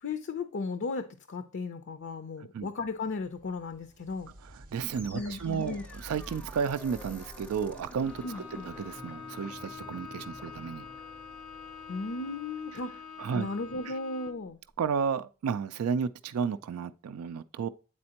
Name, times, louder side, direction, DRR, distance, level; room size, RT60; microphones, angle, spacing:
voice 1, 0.0-4.3 5.1-5.9 8.2-8.7 11.9-13.0 13.3-14.6, left 3 dB, 55° left, 0.5 m, -35 dB
sound 1, 2.7-10.3 13.7-13.8 14.8-14.9, right 1 dB, 40° right, 0.6 m, -51 dB
voice 2, 4.7-5.8 6.0-10.8 13.2-13.5 14.8-17.7, right 6 dB, 75° right, 0.3 m, -32 dB
sound 2, 4.9-14.0, equal, 5° left, 0.5 m, -51 dB
Bowed string instrument, 8.0-14.5, left 6 dB, 90° left, 0.8 m, -45 dB
8.6 x 4.2 x 2.8 m
head